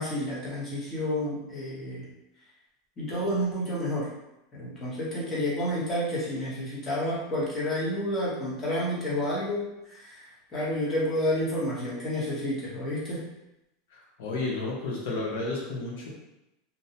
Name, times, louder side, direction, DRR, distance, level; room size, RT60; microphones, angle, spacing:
voice 1, 0.0-2.0 3.0-4.1 4.5-13.2, equal, 20° left, -7 dB, 0.9 m, -30 dB
voice 2, 13.9-16.1, left 2 dB, 70° left, -3 dB, 0.8 m, -32 dB
2.6 x 2.1 x 2.7 m, 0.90 s
supercardioid pair, 165°, 0 cm